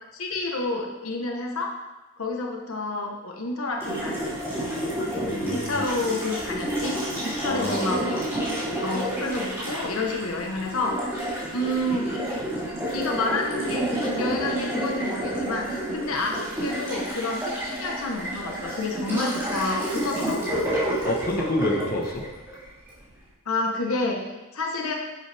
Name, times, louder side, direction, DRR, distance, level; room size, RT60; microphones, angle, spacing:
voice 1, 0.1-1.8 2.2-4.4 5.5-8.3 8.8-12.1 12.9-17.5 17.8-20.7 23.5-24.9, left 2 dB, 80° left, 1 dB, 1.2 m, -29 dB
Water tap faucet, 3.8-23.0, right 1 dB, 10° right, 3.2 m, -29 dB
voice 2, 5.2-5.8 7.4-7.9 21.0-22.2, left 1 dB, 45° left, 0 dB, 1.2 m, -28 dB
10.5 x 7.7 x 3.5 m, 1.1 s
head